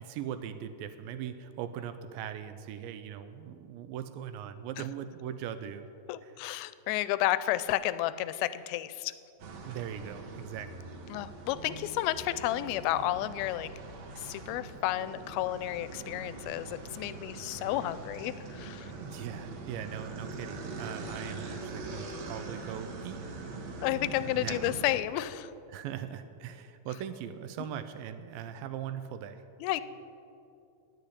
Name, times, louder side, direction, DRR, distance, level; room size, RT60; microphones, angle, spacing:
voice 1, 0.0-5.9 6.2-6.4 9.7-10.7 19.0-23.2 24.2-24.8 25.7-29.4, right 9 dB, 80° right, 11 dB, 2.2 m, -40 dB
voice 2, 6.1-9.1 11.1-13.7 14.3-18.9 23.8-25.5 29.6-29.8, left 14 dB, 90° left, 15 dB, 2.4 m, -31 dB
sound 1, 9.4-25.0, right 3 dB, 60° right, 2.0 m, -43 dB
10.0 x 8.6 x 9.8 m, 2.6 s
omnidirectional pair, 4.3 m